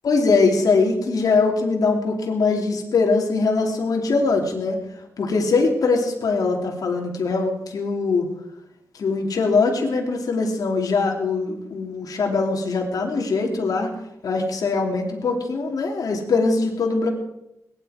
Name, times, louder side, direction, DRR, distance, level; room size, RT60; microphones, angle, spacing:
voice 1, 0.0-4.8 5.2-8.3 9.0-13.9 14.2-17.1, left 4 dB, 80° left, 1 dB, 2.8 m, -22 dB
21.0 x 10.5 x 4.9 m, 0.85 s
cardioid pair, 75°, 6 cm